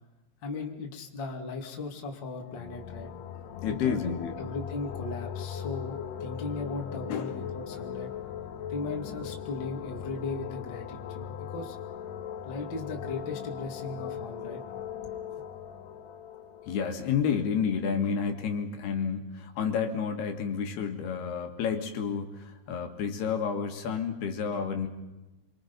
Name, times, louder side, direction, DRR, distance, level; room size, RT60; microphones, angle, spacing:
voice 1, 0.4-3.1 3.7-8.1 8.7-11.8 12.5-14.6 15.3-15.4, left 3 dB, 35° left, 1 dB, 2.2 m, -37 dB
sound 1, 2.3-17.9, left 9 dB, 85° left, 1.8 m, -39 dB
voice 2, 3.6-4.3 7.1-7.3 16.7-24.9, left 6 dB, 65° left, 4 dB, 3.5 m, -30 dB
27.5 x 24.0 x 5.5 m, 1.1 s
omnidirectional pair, 5.2 m